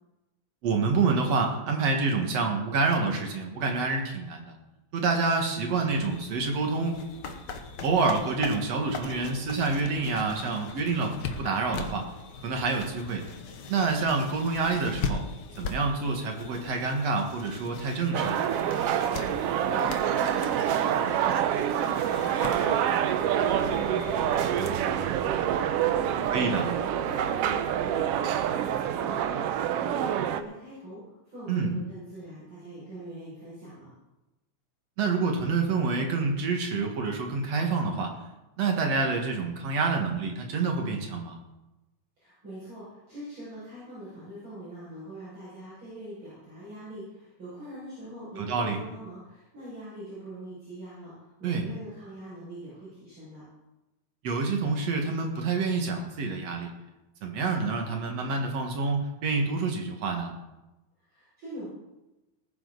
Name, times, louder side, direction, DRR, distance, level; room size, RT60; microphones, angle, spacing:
voice 1, 0.6-4.5 4.9-7.0 7.8-12.1 12.4-13.2 13.7-15.2 15.6-18.4 26.3-26.7 31.5-31.7 35.0-38.1 38.6-41.4 48.4-48.8 51.4-51.6 54.2-56.7 57.2-60.3, right 4 dB, 60° right, 2 dB, 2.7 m, -27 dB
sound 1, 5.9-24.7, left 5 dB, 90° left, 0.9 m, -40 dB
sound 2, 18.1-30.4, right 10 dB, 90° right, 1.3 m, -27 dB
voice 2, 19.3-26.6 26.9-33.9 42.2-53.4 61.0-61.7, equal, 40° right, -11 dB, 6.7 m, -43 dB
19.0 x 9.8 x 4.0 m, 0.99 s
omnidirectional pair, 3.5 m